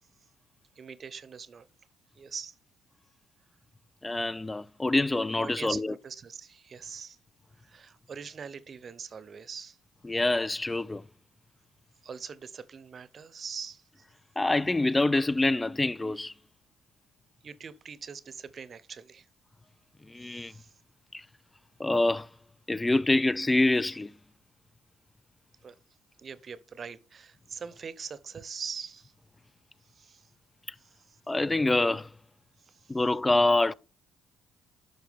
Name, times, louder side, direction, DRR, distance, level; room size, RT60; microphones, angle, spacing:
voice 1, 0.8-1.7 2.2-2.5 5.4-7.2 7.6-9.8 12.0-14.0 17.4-19.3 20.2-20.7 25.6-25.7 26.2-29.1 29.9-30.3 31.1-31.2 32.7-32.9, right 6 dB, 45° right, 0.7 m, -42 dB
voice 2, 4.0-5.9 10.0-11.0 14.4-16.3 20.1-20.5 21.1-21.2 21.8-22.3 22.7-24.1 31.3-32.1 32.9-33.7, left 2 dB, 15° left, 0.4 m, -26 dB
10.5 x 5.8 x 3.5 m
supercardioid pair, 65°, 0 cm